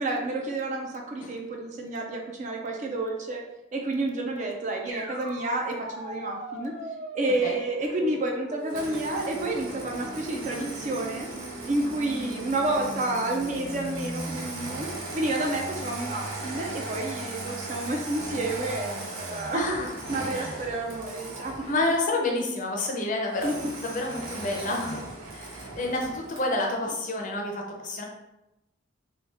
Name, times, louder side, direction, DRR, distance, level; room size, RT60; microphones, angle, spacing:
voice 1, 0.0-3.4 3.7-6.7 7.1-11.3 11.7-14.9 15.1-21.7 23.4-23.7, right 2 dB, 35° right, 1 dB, 0.4 m, -30 dB
sound 1, 4.9-14.8, equal, 65° right, 1.1 m, -40 dB
Engine starting, 8.7-22.1 23.3-26.5, right 2 dB, 85° right, 0.7 m, -38 dB
voice 2, 19.5-19.9 20.3-20.5 21.7-23.5 23.8-25.1 25.3-28.0, left 2 dB, 40° left, 0 dB, 0.5 m, -29 dB
3.1 x 2.2 x 3.3 m, 0.94 s
head